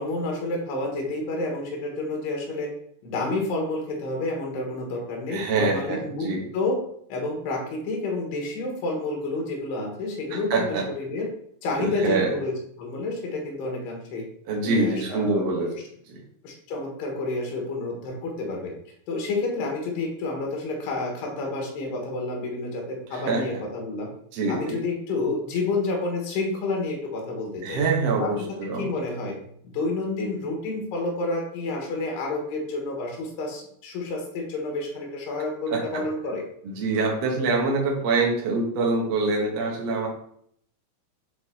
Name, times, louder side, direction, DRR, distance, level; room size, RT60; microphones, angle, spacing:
voice 1, 0.0-2.7 3.0-6.8 7.1-11.3 11.6-12.5 12.8-14.2 14.6-15.8 16.4-18.7 19.1-24.1 24.5-27.8 28.2-28.3 28.8-29.4 29.6-36.4, left 2 dB, 85° left, 0 dB, 3.4 m, -29 dB
voice 2, 5.3-6.4 10.3-10.8 11.8-12.3 14.5-15.7 16.1-16.2 23.1-23.6 24.3-24.8 27.6-28.9 35.7-36.0 36.6-40.1, right 3 dB, 85° right, -1 dB, 1.4 m, -25 dB
8.2 x 4.5 x 2.8 m, 0.68 s
omnidirectional pair, 4.7 m